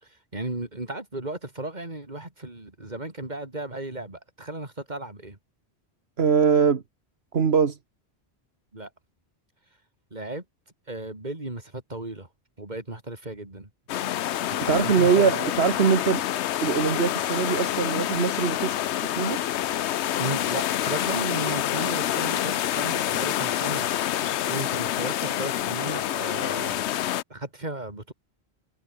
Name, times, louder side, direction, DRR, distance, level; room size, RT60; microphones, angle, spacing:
voice 1, 0.0-5.4 8.7-8.9 10.1-10.4 10.9-12.3 12.6-13.7 14.5-15.5 20.2-23.9 24.5-26.8 27.3-28.1, right 2 dB, 40° right, 3.9 m, -35 dB
voice 2, 6.2-6.8 7.3-7.8 14.7-16.2 16.6-18.8 19.2-19.4, right 6 dB, 70° right, 1.6 m, -22 dB
sound 1, 13.9-27.2, left 12 dB, 90° left, 0.9 m, -27 dB
omnidirectional pair, 1.1 m